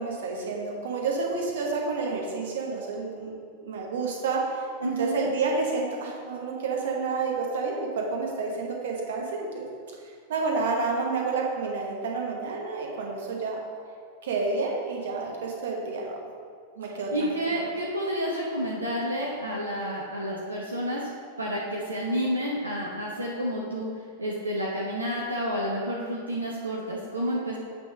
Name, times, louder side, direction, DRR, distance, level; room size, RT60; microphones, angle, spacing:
voice 1, 0.0-9.7 10.0-13.6 14.2-16.2 16.8-17.3, right 4 dB, 65° right, -1 dB, 1.2 m, -29 dB
voice 2, 4.8-5.2 17.1-21.1 21.4-23.9 24.2-27.6, equal, 85° right, -4 dB, 0.8 m, -30 dB
8.2 x 3.6 x 5.0 m, 2.1 s
figure-of-eight pair, 90°, 0 cm